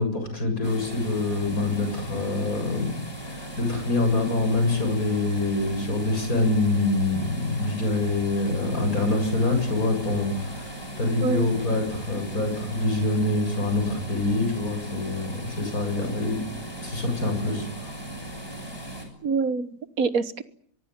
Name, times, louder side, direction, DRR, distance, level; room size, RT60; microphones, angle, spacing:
voice 1, 0.0-2.9 3.2-16.4 16.8-17.9, left 2 dB, 55° left, 6 dB, 8.0 m, -25 dB
sound 1, 0.6-19.0, right 1 dB, 15° left, 6.8 m, -38 dB
voice 2, 19.2-20.4, right 4 dB, 55° right, 14 dB, 1.7 m, -25 dB
24.0 x 23.0 x 9.5 m, 0.62 s
omnidirectional pair, 1.8 m